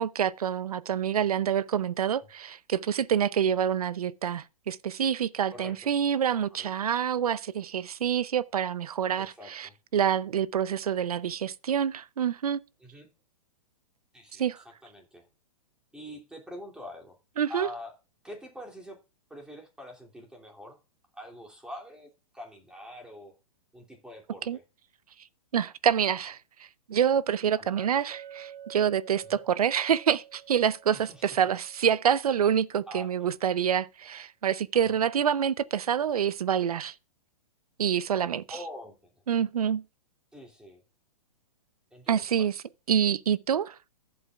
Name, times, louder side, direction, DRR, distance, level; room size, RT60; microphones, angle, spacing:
voice 1, 0.0-12.6 14.4-14.6 17.4-17.7 24.5-24.6 25.5-26.4 26.9-36.9 37.8-38.4 39.3-39.8 42.1-42.5 42.9-43.7, right 8 dB, 85° right, 0.7 m, -27 dB
voice 2, 5.5-5.9 6.5-6.7 9.2-9.7 12.8-13.1 14.1-15.3 15.9-17.2 17.5-17.9 18.2-19.0 19.3-20.8 21.1-23.3 23.7-24.6 27.6-27.9 29.2-29.4 30.9-31.4 32.9-33.1 34.8-35.0 38.5-39.0 40.3-40.8 41.9-42.5, left 1 dB, 5° right, 2.8 m, -45 dB
Chink clink, 28.1-32.3, right 9 dB, 45° right, 4.3 m, -49 dB
14.5 x 8.0 x 2.4 m
hypercardioid pair, 135°, 19 cm